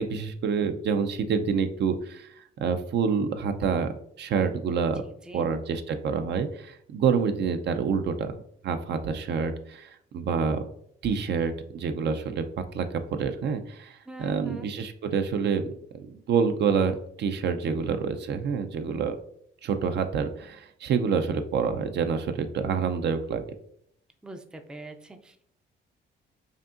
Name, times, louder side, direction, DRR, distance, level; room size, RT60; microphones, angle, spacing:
voice 1, 0.0-2.3 2.6-3.9 4.2-5.0 5.3-8.3 8.6-10.6 11.0-12.4 12.7-12.9 13.2-15.6 15.9-19.2 19.6-23.4, right 6 dB, 60° right, 8 dB, 0.5 m, -27 dB
voice 2, 5.0-5.4 14.1-14.7 24.2-25.4, right 1 dB, 5° right, 6 dB, 0.4 m, -43 dB
5.0 x 2.7 x 2.5 m, 0.69 s
cardioid pair, 90°, 20 cm